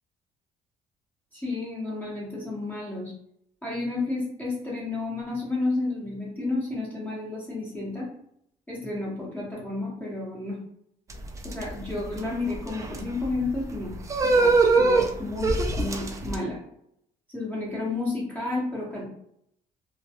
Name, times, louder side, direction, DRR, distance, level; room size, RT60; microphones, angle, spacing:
voice 1, 1.3-3.1 3.6-8.1 8.7-10.6 11.4-13.9 14.2-16.6 17.3-19.1, left 2 dB, 10° left, -6 dB, 0.9 m, -31 dB
sound 1, 11.1-16.4, right 3 dB, 20° right, 0.3 m, -24 dB
2.2 x 2.2 x 2.8 m, 0.74 s
cardioid pair, 115°, 16 cm